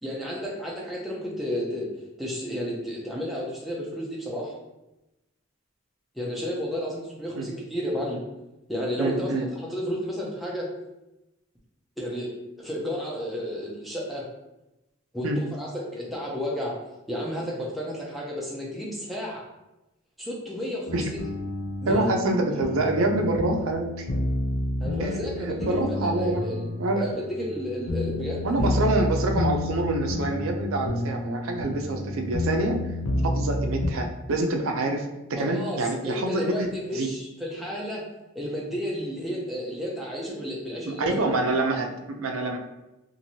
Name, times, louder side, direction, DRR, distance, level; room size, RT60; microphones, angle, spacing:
voice 1, 0.0-1.9 2.2-4.5 6.2-8.2 8.7-10.7 12.0-12.3 12.6-14.2 15.1-16.8 17.1-19.4 20.2-21.2 21.8-22.0 24.8-25.6 25.9-26.6 26.9-28.7 35.4-38.0 38.3-41.2, equal, ahead, -4 dB, 0.4 m, -32 dB
voice 2, 9.0-9.5 15.2-15.4 20.9-21.1 21.9-24.1 25.0-25.1 25.4-27.1 28.4-32.8 33.2-36.5 36.9-37.1 40.9-42.6, right 2 dB, 80° right, 3 dB, 0.4 m, -26 dB
sound 1, 20.9-33.9, left 1 dB, 65° left, 0.4 m, -30 dB
2.9 x 2.5 x 2.7 m, 0.97 s
head